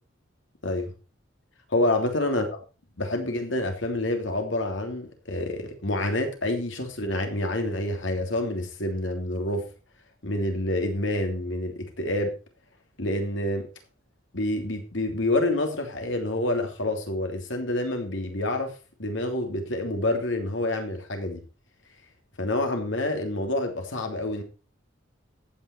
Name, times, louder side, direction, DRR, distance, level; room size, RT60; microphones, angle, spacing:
voice 1, 1.7-2.5 3.0-9.6 10.2-12.3 13.0-13.7 14.3-18.7 19.0-21.4 22.4-24.4, left 1 dB, 70° left, 3.0 m, -27 dB
15.0 x 9.4 x 4.5 m
head